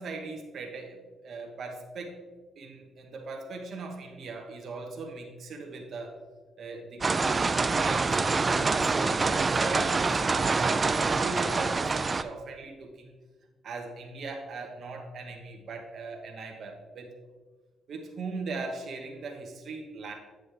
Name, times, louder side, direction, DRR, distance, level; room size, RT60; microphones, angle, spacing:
voice 1, 0.0-2.2 2.6-6.2 6.6-13.1 13.6-17.1 17.9-20.1, right 3 dB, 60° right, 1 dB, 1.0 m, -39 dB
sound 1, 7.0-12.2, right 4 dB, 30° right, 0.4 m, -26 dB
8.8 x 6.3 x 3.4 m, 1.4 s
cardioid pair, 90°, 0 cm